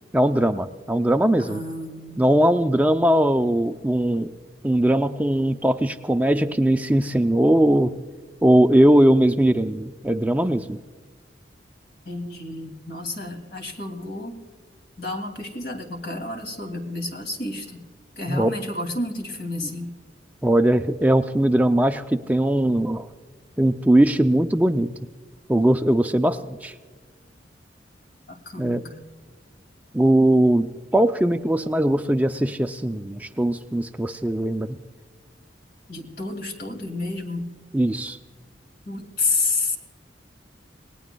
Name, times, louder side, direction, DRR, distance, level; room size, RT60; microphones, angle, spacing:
voice 1, 0.1-1.6 2.2-4.3 4.6-7.9 8.4-10.8 18.3-18.5 20.4-23.1 23.6-24.9 25.5-26.7 28.6-28.8 29.9-34.8 37.7-38.2, right 1 dB, 10° right, 7 dB, 0.4 m, -20 dB
voice 2, 1.4-2.2 12.1-14.4 15.0-17.8 18.2-19.9 28.3-29.0 35.9-37.5 38.9-39.8, left 2 dB, 65° left, 4 dB, 2.5 m, -30 dB
28.0 x 19.0 x 2.2 m, 1.5 s
head